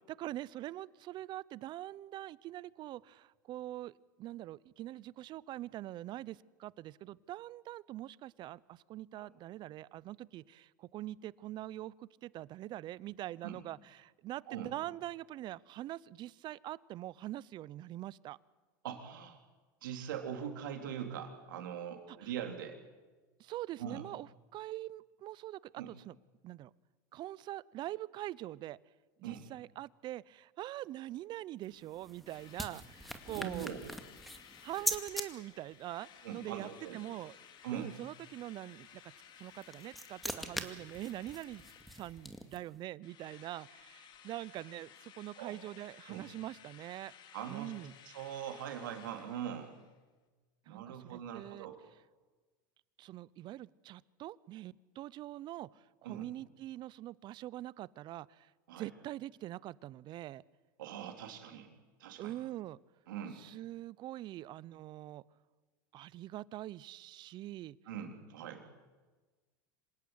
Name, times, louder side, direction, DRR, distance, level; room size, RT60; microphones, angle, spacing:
voice 1, 0.1-18.4 22.1-22.3 23.4-26.1 26.4-26.7 27.1-28.8 29.2-33.7 34.6-37.4 37.7-39.1 39.4-41.6 41.9-47.1 47.5-47.9 50.7-51.7 53.0-58.5 58.8-60.4 62.2-62.8 63.3-65.2 65.9-67.8, right 14 dB, 45° right, 22 dB, 0.7 m, -44 dB
voice 2, 18.8-19.4 19.8-22.8 23.8-24.0 25.8-25.9 29.2-29.4 33.3-33.8 36.2-37.0 37.6-37.9 45.4-45.6 46.1-46.2 47.3-47.7 48.1-49.7 50.7-51.8 56.0-56.2 58.7-58.9 60.8-61.7 62.0-62.3 63.1-63.4 67.9-68.6, right 9 dB, 85° right, 4 dB, 3.8 m, -42 dB
sound 1, 31.6-35.3 39.4-42.8, equal, ahead, 2.2 m, -42 dB
Drill, 32.3-42.6 43.0-49.9, left 9 dB, 45° left, 2.4 m, -57 dB
26.5 x 17.5 x 8.2 m, 1.3 s
hypercardioid pair, 100°, 11 cm